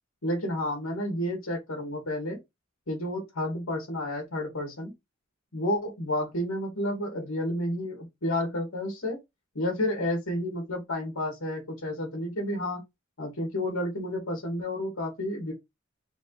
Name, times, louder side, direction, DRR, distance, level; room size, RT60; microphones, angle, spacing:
voice 1, 0.2-2.4 2.9-4.9 5.5-9.2 9.5-12.8 13.2-15.5, left 1 dB, 85° left, 2.2 m, -31 dB
4.4 x 3.0 x 3.9 m
head